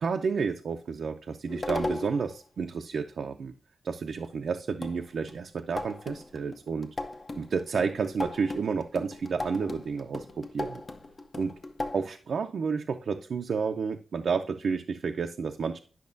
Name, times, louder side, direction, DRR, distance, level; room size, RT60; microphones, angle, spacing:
voice 1, 0.0-3.5 3.8-7.0 7.4-10.8 11.4-11.5 11.9-15.8, right 5 dB, 70° right, 5 dB, 0.5 m, -31 dB
sound 1, 1.5-2.3 4.2-4.3 4.8-12.0, left 2 dB, 35° left, 0.8 m, -37 dB
10.5 x 5.8 x 2.6 m, 0.41 s
wide cardioid pair, 130°, 0 cm